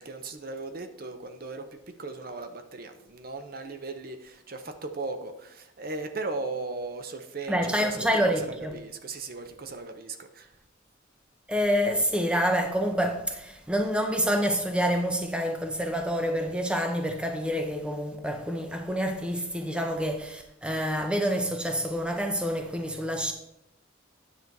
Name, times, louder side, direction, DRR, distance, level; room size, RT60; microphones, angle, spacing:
voice 1, 0.0-10.5, right 3 dB, 45° right, 0.7 m, -37 dB
voice 2, 7.5-8.8 11.5-23.3, equal, 5° right, 0.6 m, -27 dB
9.6 x 6.2 x 4.0 m
head